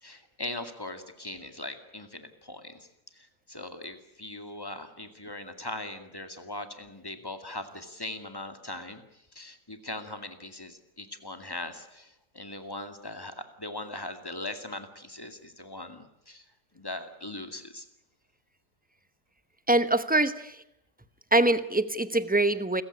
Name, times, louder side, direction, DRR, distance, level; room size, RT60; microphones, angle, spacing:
voice 1, 0.0-2.8 3.1-9.0 9.3-16.5 16.7-17.9, left 2 dB, 15° left, 7 dB, 2.2 m, -40 dB
voice 2, 19.7-20.6 21.3-22.8, right 2 dB, 10° right, 12 dB, 0.6 m, -24 dB
29.0 x 15.5 x 9.8 m, 0.84 s
omnidirectional pair, 1.7 m